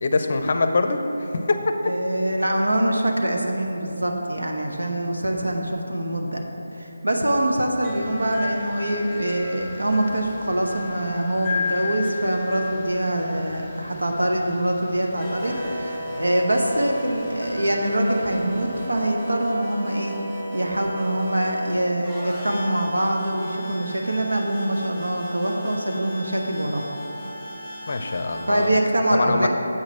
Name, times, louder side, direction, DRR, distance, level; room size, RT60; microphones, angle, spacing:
voice 1, 0.0-1.6 27.9-28.7 29.1-29.5, left 3 dB, 50° left, 7 dB, 0.5 m, -23 dB
voice 2, 1.8-6.4 6.7-20.2 20.5-26.9 28.5-29.5, right 1 dB, 85° right, 2 dB, 1.0 m, -24 dB
sound 1, 7.8-19.0, left 5 dB, 10° left, 0.7 m, -36 dB
sound 2, 15.0-28.7, equal, 10° right, 1.0 m, -35 dB
7.7 x 6.0 x 4.3 m, 3.0 s
figure-of-eight pair, 160°, 0 cm